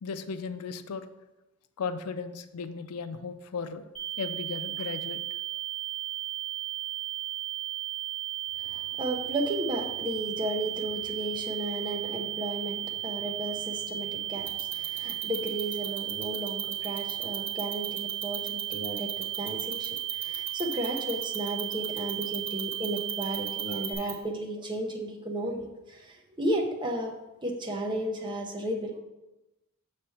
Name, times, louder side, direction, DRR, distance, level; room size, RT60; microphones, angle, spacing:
voice 1, 0.0-1.1 1.8-3.9 4.2-5.2 5.5-5.6, left 5 dB, 85° left, 10 dB, 0.5 m, -36 dB
sound 1, 3.9-23.9, right 14 dB, 5° left, 0.9 m, -35 dB
voice 2, 8.6-27.1 27.4-29.0, right 1 dB, 20° right, 1 dB, 0.7 m, -34 dB
sound 2, 14.5-24.1, right 6 dB, 55° right, 1.0 m, -36 dB
6.6 x 3.2 x 5.7 m, 1.0 s
head